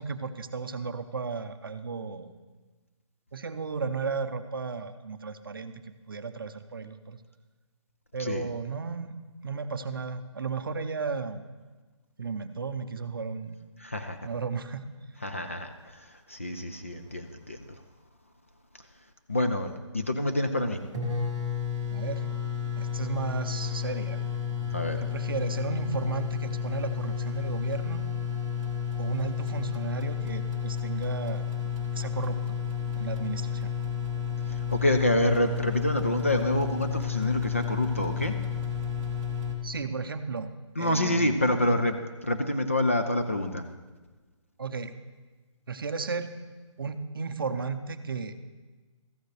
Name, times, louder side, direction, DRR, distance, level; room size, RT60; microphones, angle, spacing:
voice 1, 0.0-2.3 3.3-5.7 6.1-7.2 8.1-9.1 9.4-11.4 12.2-13.6 14.2-14.9 21.9-22.3 22.8-24.2 25.0-28.1 29.0-31.4 31.9-32.6 33.0-33.7 39.6-40.5 40.8-41.4 44.6-45.0 45.7-46.3 46.8-48.4, right 5 dB, 45° right, 9 dB, 0.6 m, -34 dB
voice 2, 13.8-14.2 15.2-15.7 16.3-17.6 19.3-20.8 24.7-25.0 34.7-38.4 40.8-42.0 42.2-43.6, left 1 dB, 25° left, 6 dB, 0.3 m, -27 dB
sound 1, 20.6-20.7 20.9-39.5, left 7 dB, 10° right, 0.7 m, -31 dB
14.0 x 9.2 x 3.2 m, 1.3 s
hypercardioid pair, 175°, 16 cm